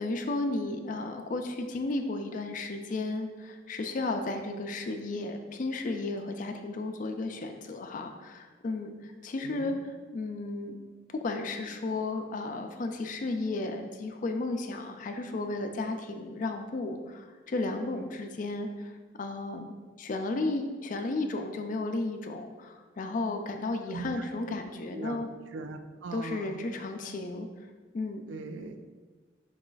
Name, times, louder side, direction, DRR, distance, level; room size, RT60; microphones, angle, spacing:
voice 1, 0.0-9.8 10.1-10.8 11.1-18.9 19.2-25.3 26.1-27.5 27.9-28.3, left 2 dB, 45° left, 5 dB, 0.3 m, -33 dB
voice 2, 9.4-9.8 23.9-24.3 24.9-25.2 25.5-26.6 28.3-28.7, right 3 dB, 85° right, 8 dB, 0.3 m, -40 dB
4.7 x 2.4 x 3.8 m, 1.4 s
head